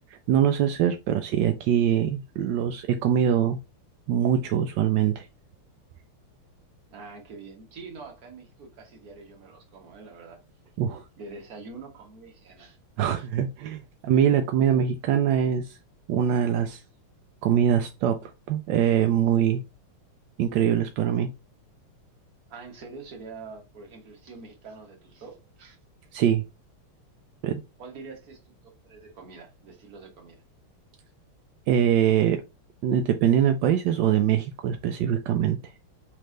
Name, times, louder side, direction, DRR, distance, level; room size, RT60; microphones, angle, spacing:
voice 1, 0.3-3.6 4.1-5.3 10.8-11.0 13.0-15.8 16.1-16.8 17.4-19.6 20.4-21.3 26.1-26.4 27.4-27.6 31.7-32.4 32.8-35.6, right 9 dB, 75° right, 1.0 m, -23 dB
voice 2, 6.9-10.4 11.2-12.8 13.1-13.3 22.5-25.8 27.8-30.4, right 4 dB, 45° right, 1.6 m, -45 dB
4.3 x 3.3 x 3.7 m
omnidirectional pair, 2.4 m